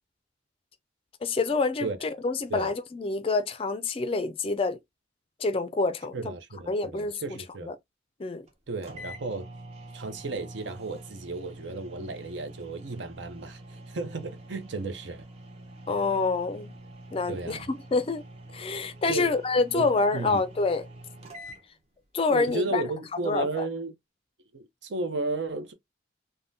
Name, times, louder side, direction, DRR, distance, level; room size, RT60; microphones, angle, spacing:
voice 1, 1.2-4.8 5.4-6.3 6.7-7.2 7.7-7.8 8.2-8.5 15.9-16.7 17.1-18.2 18.5-20.8 22.1-22.8 23.2-23.7, left 3 dB, 30° left, 0.3 m, -27 dB
voice 2, 6.1-7.7 8.7-9.5 9.9-13.6 13.9-15.3 17.3-17.7 19.1-19.4 19.7-20.4 22.3-24.0 24.5-25.7, right 3 dB, 70° right, 0.6 m, -34 dB
sound 1, 8.5-8.6 8.8-21.6, right 1 dB, 35° right, 0.7 m, -46 dB
3.5 x 2.1 x 2.6 m
head